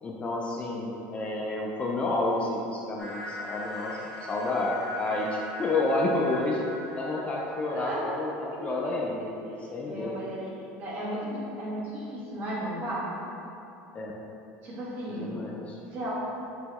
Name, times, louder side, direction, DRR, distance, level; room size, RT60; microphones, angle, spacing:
voice 1, 0.0-6.6 6.9-10.1 13.9-14.2 15.2-15.8, left 2 dB, 25° left, -2 dB, 0.4 m, -30 dB
sound 1, 3.0-8.1, left 2 dB, 5° left, 1.1 m, -40 dB
voice 2, 7.6-8.0 8.5-8.6 9.8-10.4 10.8-13.1 14.6-15.3 15.9-16.1, right 1 dB, 40° right, -8 dB, 1.4 m, -34 dB
5.5 x 3.0 x 2.9 m, 2.9 s
cardioid pair, 150°, 5 cm